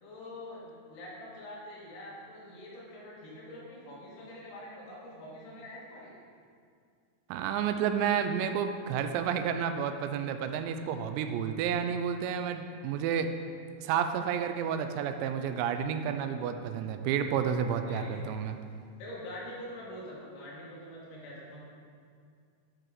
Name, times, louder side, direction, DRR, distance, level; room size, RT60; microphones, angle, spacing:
voice 1, 0.0-6.2 17.9-18.3 19.0-21.6, left 1 dB, 70° left, -5 dB, 3.6 m, -45 dB
voice 2, 7.3-13.3 13.8-18.6, right 7 dB, 85° right, 8 dB, 2.8 m, -30 dB
9.7 x 4.6 x 4.9 m, 2.2 s
omnidirectional pair, 5.1 m